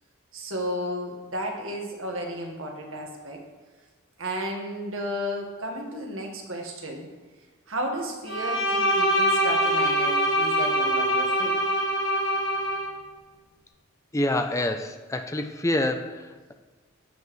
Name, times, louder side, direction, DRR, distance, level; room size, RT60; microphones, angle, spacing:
voice 1, 0.3-3.4 4.2-7.1 7.7-11.5, equal, 80° right, 1 dB, 1.6 m, -33 dB
Bowed string instrument, 8.3-12.9, equal, 65° left, 1.5 m, -24 dB
voice 2, 14.1-16.5, left 1 dB, 15° left, 7 dB, 0.5 m, -27 dB
12.0 x 7.1 x 3.2 m, 1.4 s
head